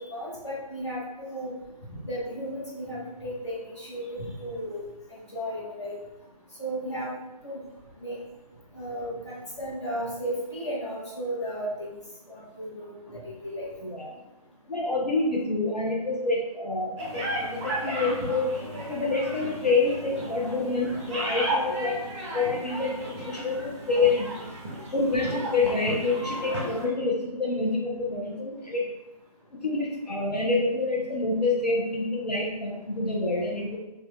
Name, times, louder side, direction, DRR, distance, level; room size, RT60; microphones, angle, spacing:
voice 1, 0.0-1.5 1.9-5.9 6.6-7.1 7.4-7.6 8.0-8.2 8.7-12.0 12.3-13.7, equal, 45° left, -5 dB, 1.3 m, -34 dB
voice 2, 14.7-18.5 18.9-21.9 22.3-24.3 24.9-28.8 29.6-33.8, left 3 dB, 90° left, -4 dB, 0.8 m, -27 dB
sound 1, 17.0-26.9, right 1 dB, 20° right, 0.9 m, -34 dB
4.7 x 2.5 x 2.3 m, 1.0 s
figure-of-eight pair, 150°, 20 cm